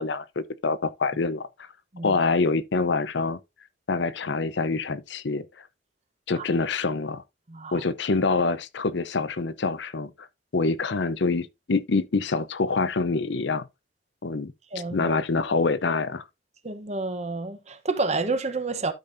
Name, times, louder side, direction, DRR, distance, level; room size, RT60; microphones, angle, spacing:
voice 1, 0.0-1.7 2.0-3.4 3.9-5.5 6.3-7.2 7.7-10.3 10.5-13.6 14.2-14.5 14.9-16.2, left 3 dB, 65° left, 0.6 m, -26 dB
voice 2, 7.5-7.8 14.7-15.1 16.6-18.9, right 3 dB, 35° right, 0.9 m, -29 dB
12.0 x 5.2 x 2.6 m
head